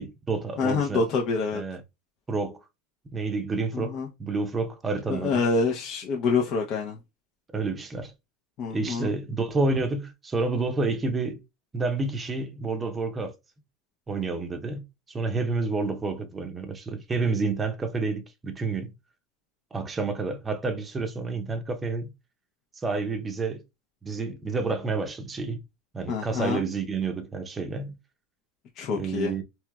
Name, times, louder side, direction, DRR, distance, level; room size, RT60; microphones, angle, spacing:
voice 1, 0.0-1.1 1.5-1.8 2.3-2.6 3.1-5.4 7.5-8.1 8.7-11.4 11.7-13.3 14.1-18.9 19.7-22.1 22.8-23.6 24.0-25.6 25.9-28.0 28.9-29.4, right 3 dB, 20° right, 0.6 m, -29 dB
voice 2, 0.6-1.6 3.7-4.1 5.1-7.0 8.6-9.1 26.1-26.6 28.8-29.3, left 4 dB, 50° left, 0.6 m, -26 dB
3.3 x 2.8 x 2.2 m
supercardioid pair, 115°, 0 cm